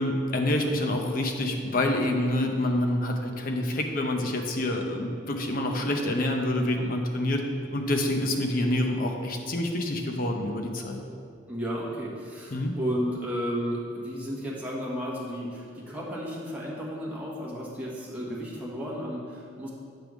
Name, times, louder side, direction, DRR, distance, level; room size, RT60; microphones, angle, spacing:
voice 1, 0.0-7.4 7.7-11.0 12.5-12.7, left 1 dB, 45° left, 2 dB, 0.7 m, -27 dB
voice 2, 11.5-19.7, equal, 10° right, -6 dB, 1.2 m, -33 dB
7.8 x 3.4 x 6.0 m, 2.3 s
head